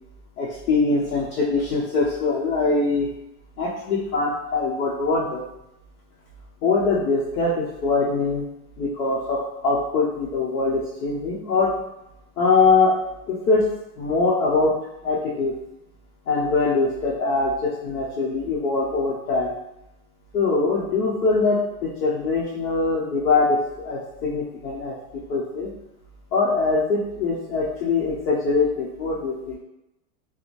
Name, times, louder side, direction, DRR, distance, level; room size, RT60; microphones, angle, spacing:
voice 1, 0.4-3.1 3.6-5.4 6.6-8.4 8.8-11.7 12.4-12.9 13.3-13.6 14.0-14.7 15.0-15.5 16.3-19.5 20.3-25.7 26.3-29.6, left 3 dB, 85° left, -5 dB, 0.8 m, -22 dB
2.5 x 2.1 x 3.0 m, 0.88 s
hypercardioid pair, 120°, 44 cm